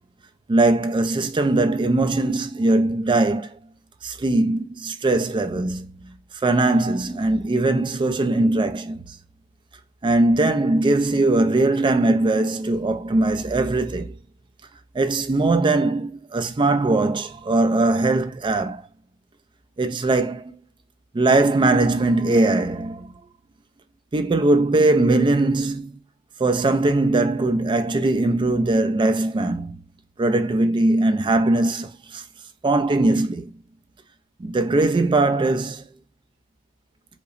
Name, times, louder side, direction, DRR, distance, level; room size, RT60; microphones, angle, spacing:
voice 1, 0.5-3.6 4.0-6.1 6.4-9.2 10.0-14.1 14.9-18.9 19.8-20.5 21.1-23.1 24.1-26.0 26.4-29.8 30.2-32.2 32.6-33.5 34.4-35.8, right 2 dB, 20° right, 0.4 m, -20 dB
5.0 x 2.1 x 2.5 m
head